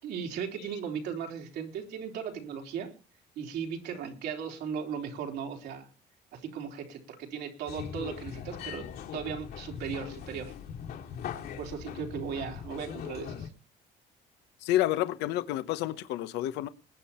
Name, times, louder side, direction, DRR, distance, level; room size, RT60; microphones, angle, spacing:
voice 1, 0.0-2.9 3.4-5.9 6.3-8.9 9.1-10.5 11.6-13.5, right 7 dB, 80° right, 3.7 m, -37 dB
sound 1, 7.7-13.5, left 8 dB, 70° left, 2.8 m, -40 dB
voice 2, 14.6-16.7, left 14 dB, 90° left, 1.0 m, -29 dB
21.0 x 8.6 x 4.4 m
cardioid pair, 110°, 17 cm